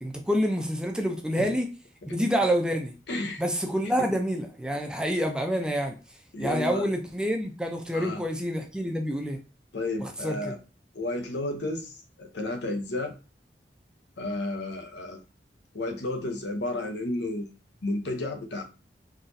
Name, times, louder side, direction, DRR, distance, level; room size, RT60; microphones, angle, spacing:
voice 1, 0.0-1.7 2.1-2.9 3.4-6.0 6.4-9.4 10.0-10.5, equal, 5° right, 3 dB, 0.5 m, -27 dB
voice 2, 3.1-3.4 4.0-4.1 6.3-6.9 7.9-8.2 9.7-10.6 10.9-13.2 14.2-15.2 15.7-17.5 17.8-18.6, left 2 dB, 75° left, 5 dB, 0.8 m, -32 dB
4.0 x 3.0 x 2.6 m, 0.32 s
head